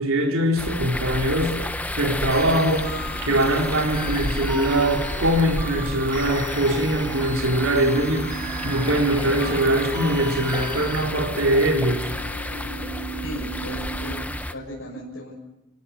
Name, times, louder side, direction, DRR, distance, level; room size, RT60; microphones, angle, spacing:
voice 1, 0.0-2.9 3.2-12.1, right 1 dB, 90° right, 4.0 m, -22 dB
sound 1, 0.6-14.5, left 1 dB, 5° left, 0.9 m, -31 dB
sound 2, 2.3-11.0, right 2 dB, 20° right, 3.0 m, -38 dB
sound 3, 2.4-14.2, right 4 dB, 60° right, 3.5 m, -38 dB
voice 2, 13.2-14.3 14.5-15.3, left 1 dB, 80° left, 6.8 m, -36 dB
27.0 x 17.0 x 8.5 m
head